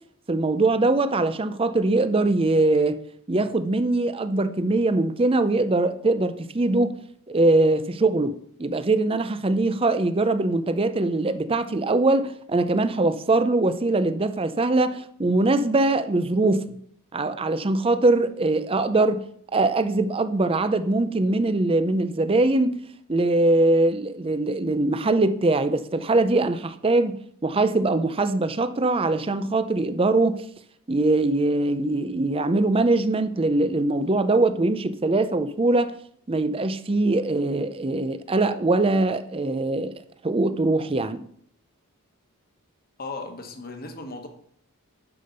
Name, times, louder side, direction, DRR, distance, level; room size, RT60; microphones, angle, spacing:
voice 1, 0.3-3.0 3.3-7.0 7.3-16.8 17.1-19.2 19.5-22.8 23.1-30.4 30.9-35.9 36.3-39.9 40.2-41.2, right 2 dB, 25° right, 0.5 m, -22 dB
voice 2, 43.0-44.3, left 3 dB, 40° left, 1.3 m, -36 dB
10.5 x 5.2 x 5.4 m
head